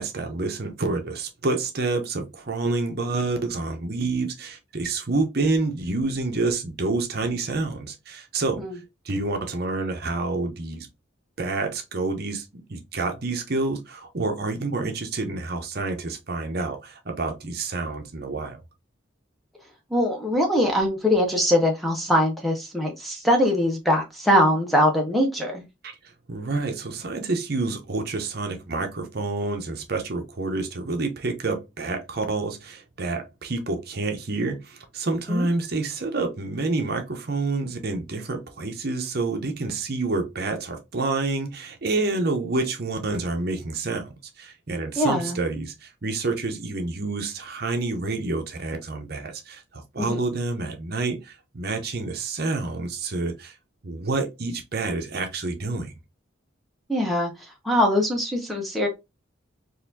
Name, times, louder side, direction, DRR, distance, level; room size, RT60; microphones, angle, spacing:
voice 1, 0.0-8.6 9.0-10.9 11.4-18.6 25.8-25.9 26.3-53.5 53.8-55.9, right 3 dB, 50° right, 0.8 m, -28 dB
voice 2, 19.9-25.6 35.3-35.5 45.0-45.4 50.0-50.2 56.9-58.9, equal, ahead, 0.7 m, -22 dB
4.0 x 2.6 x 2.6 m
head